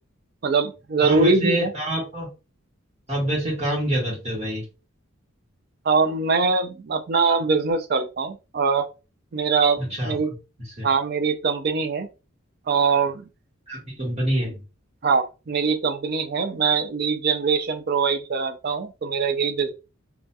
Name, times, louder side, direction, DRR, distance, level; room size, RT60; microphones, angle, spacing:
voice 1, 0.4-1.7 5.8-8.9 9.3-10.3 10.8-12.1 12.7-13.2 15.0-19.7, right 4 dB, 50° right, 0.4 m, -22 dB
voice 2, 1.0-2.3 3.1-4.6 9.8-10.1 10.8-10.9 13.7-14.6, right 1 dB, 30° right, 1.3 m, -26 dB
2.7 x 2.4 x 2.2 m
head